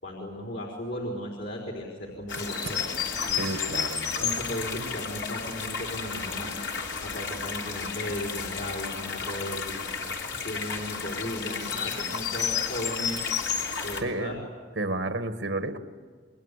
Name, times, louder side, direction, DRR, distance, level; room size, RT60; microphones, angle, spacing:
voice 1, 0.0-2.9 3.2-3.5 4.2-6.5 7.0-9.8 10.4-13.3 13.8-14.4, left 1 dB, 70° left, -1 dB, 4.3 m, -36 dB
sound 1, 2.3-14.0, left 6 dB, 85° left, 3.4 m, -32 dB
voice 2, 3.3-4.4 14.0-14.4 14.7-15.8, right 2 dB, 90° right, 8 dB, 1.8 m, -31 dB
29.0 x 23.0 x 8.4 m, 1.5 s
head